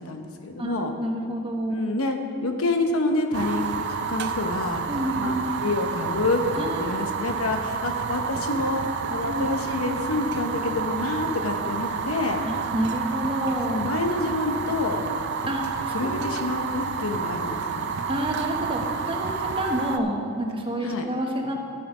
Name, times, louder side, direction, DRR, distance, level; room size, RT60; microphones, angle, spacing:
voice 1, 0.0-0.9 1.7-4.8 5.2-5.4 5.6-12.4 13.7-15.1 15.9-17.9 20.8-21.1, left 2 dB, 70° left, 4 dB, 0.9 m, -27 dB
voice 2, 0.6-1.8 4.9-5.5 6.5-7.0 9.3-9.5 12.4-13.9 15.5-16.5 18.1-21.5, right 1 dB, 25° right, 1 dB, 1.1 m, -29 dB
Fire, 3.3-20.0, right 6 dB, 50° right, 0.5 m, -30 dB
13.0 x 7.4 x 4.9 m, 2.5 s
head